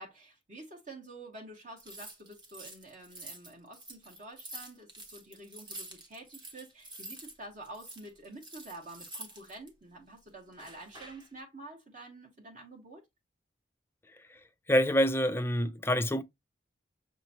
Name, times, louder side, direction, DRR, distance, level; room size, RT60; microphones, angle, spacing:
voice 1, 0.0-13.0, right 2 dB, 40° right, 1.3 m, -48 dB
sound 1, 1.8-7.4 7.6-9.7 10.5-11.3, right 2 dB, 25° right, 1.0 m, -47 dB
voice 2, 14.7-16.2, equal, 10° left, 0.4 m, -26 dB
6.1 x 3.0 x 2.8 m
head